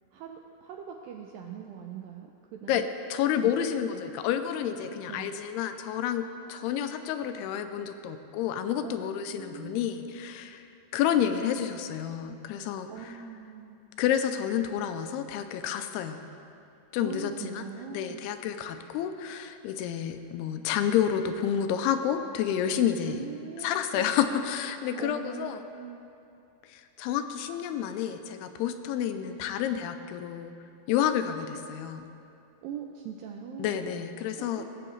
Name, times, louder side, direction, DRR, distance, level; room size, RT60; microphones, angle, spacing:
voice 1, 0.1-2.9 3.4-3.5 3.9-4.0 4.8-5.4 8.8-9.0 9.3-9.8 12.9-13.8 17.0-18.2 23.1-24.1 25.0-26.0 32.6-33.9 34.4-34.6, right 7 dB, 90° right, 2 dB, 2.0 m, -42 dB
voice 2, 3.1-10.7 10.9-12.9 14.0-16.2 16.9-17.6 17.9-23.2 23.6-25.6 26.7-30.5 30.9-32.1 33.6-34.6, left 9 dB, 85° left, 8 dB, 2.5 m, -29 dB
18.0 x 7.8 x 3.2 m, 2.6 s
omnidirectional pair, 4.6 m